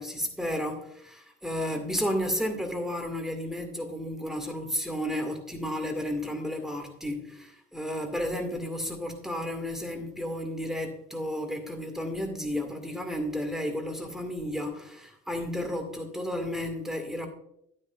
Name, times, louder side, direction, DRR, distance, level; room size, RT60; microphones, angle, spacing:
voice 1, 0.0-17.3, equal, ahead, 2.0 m, -32 dB
10.5 x 9.4 x 2.5 m
figure-of-eight pair, 45°, 33 cm